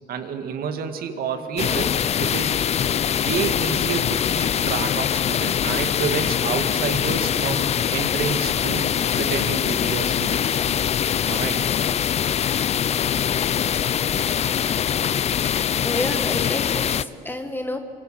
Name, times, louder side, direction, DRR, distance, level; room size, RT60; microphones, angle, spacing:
voice 1, 0.1-2.6 3.1-10.6 11.3-11.6, right 6 dB, 60° right, 7 dB, 2.1 m, -29 dB
sound 1, 1.6-17.0, left 9 dB, 40° left, 0.5 m, -23 dB
voice 2, 15.8-17.8, left 2 dB, 10° left, 6 dB, 1.4 m, -29 dB
25.5 x 25.0 x 6.0 m, 2.9 s
cardioid pair, 110°, 17 cm